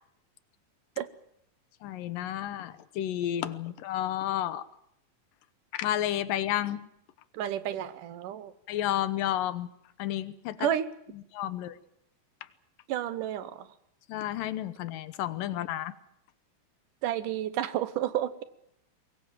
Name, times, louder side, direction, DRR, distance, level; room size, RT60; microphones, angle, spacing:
voice 1, 1.8-4.6 5.7-6.9 8.7-9.7 10.0-10.7 11.3-11.8 14.1-15.9, left 12 dB, 85° left, 14 dB, 2.7 m, -31 dB
voice 2, 7.3-8.5 10.6-10.9 12.9-13.7 17.0-18.4, right 11 dB, 75° right, 13 dB, 2.6 m, -31 dB
23.5 x 21.0 x 7.4 m, 0.76 s
omnidirectional pair, 3.8 m